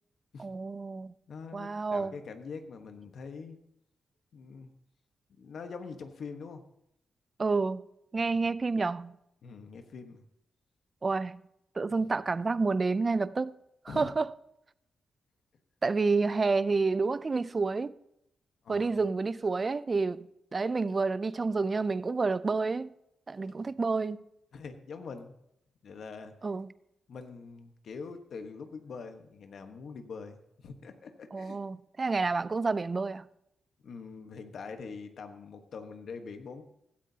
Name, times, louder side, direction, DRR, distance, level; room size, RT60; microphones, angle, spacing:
voice 1, 0.4-1.1 1.5-2.1 7.4-7.8 8.1-9.2 11.0-11.4 11.8-13.5 13.9-14.3 15.8-17.9 18.7-22.9 23.3-24.2 26.4-26.7 31.3-33.2, right 4 dB, 35° right, 0.4 m, -29 dB
voice 2, 1.3-3.6 4.3-4.7 5.4-6.6 8.2-8.3 9.4-10.2 13.9-14.1 18.6-18.9 23.5-23.7 24.5-25.3 25.8-26.3 27.1-31.6 33.8-36.6, left 5 dB, 70° left, 1.2 m, -44 dB
16.0 x 13.0 x 2.8 m
cardioid pair, 100°, 0 cm